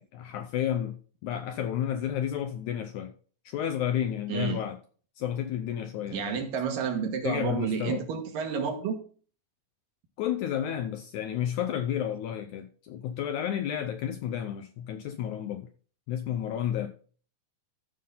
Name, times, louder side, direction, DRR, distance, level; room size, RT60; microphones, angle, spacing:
voice 1, 0.1-3.1 3.5-4.8 5.2-6.4 7.2-8.1 10.2-15.7 16.1-16.9, left 10 dB, 80° left, 1.8 m, -31 dB
voice 2, 4.3-4.6 6.1-9.0, right 6 dB, 70° right, 3.1 m, -30 dB
14.0 x 5.5 x 3.8 m
omnidirectional pair, 4.1 m